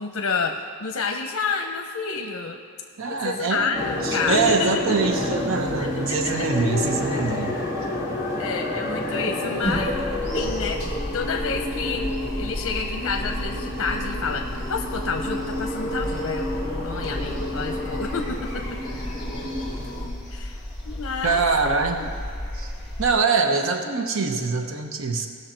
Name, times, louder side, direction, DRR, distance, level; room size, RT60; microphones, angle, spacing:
voice 1, 0.0-2.6 3.2-4.8 5.8-6.5 8.4-10.1 10.3-10.8 11.1-12.1 12.4-14.4 14.7-16.5 16.8-18.6 20.3-21.4 22.0-22.1, left 5 dB, 80° left, 4 dB, 0.7 m, -29 dB
voice 2, 3.0-7.6 21.2-22.1 22.5-22.7 23.0-25.3, right 4 dB, 65° right, 4 dB, 0.9 m, -24 dB
sound 1, 3.7-20.1, left 1 dB, 15° right, 2.2 m, -30 dB
sound 2, 9.6-23.1, equal, ahead, 2.6 m, -33 dB
18.0 x 6.4 x 4.4 m, 2.4 s
head